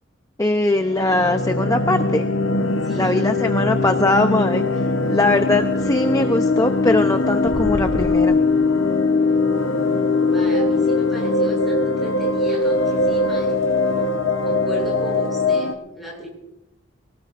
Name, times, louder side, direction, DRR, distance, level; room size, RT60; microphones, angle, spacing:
voice 1, 0.4-2.3 3.0-8.4, left 2 dB, 15° left, 6 dB, 0.6 m, -21 dB
sound 1, 0.8-15.7, left 3 dB, 85° left, 1.0 m, -21 dB
voice 2, 2.8-3.3 9.5-13.6 14.4-16.3, right 2 dB, ahead, -3 dB, 7.0 m, -36 dB
sound 2, 5.0-15.7, equal, 40° left, 6.7 m, -39 dB
24.5 x 18.5 x 2.6 m, 0.87 s
head